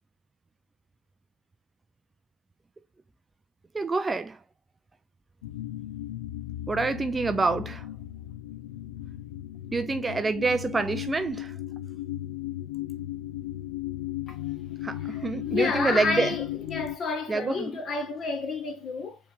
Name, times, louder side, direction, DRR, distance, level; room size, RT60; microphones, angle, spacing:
voice 1, 3.7-4.4 6.7-7.9 9.7-11.6 14.8-16.3 17.3-17.7, right 3 dB, 20° right, 0.4 m, -27 dB
sound 1, 5.4-17.0, left 14 dB, 80° left, 0.6 m, -36 dB
voice 2, 15.1-19.2, left 4 dB, 40° left, 1.6 m, -30 dB
4.5 x 3.3 x 3.4 m
hypercardioid pair, 90°, 0 cm